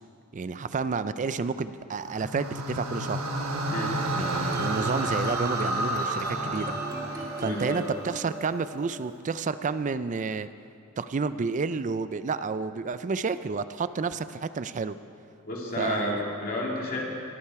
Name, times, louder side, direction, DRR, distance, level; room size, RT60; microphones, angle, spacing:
voice 1, 0.3-3.2 4.1-6.8 7.4-10.5 11.0-15.0 15.8-16.1, right 4 dB, 35° right, 13 dB, 0.4 m, -30 dB
sound 1, 2.0-8.3, right 1 dB, 80° right, 1.3 m, -30 dB
sound 2, 4.2-9.7, right 1 dB, 20° right, 2.3 m, -39 dB
voice 2, 7.4-7.9 15.4-17.0, left 1 dB, 45° left, -3 dB, 2.4 m, -31 dB
22.0 x 8.8 x 4.7 m, 2.5 s
head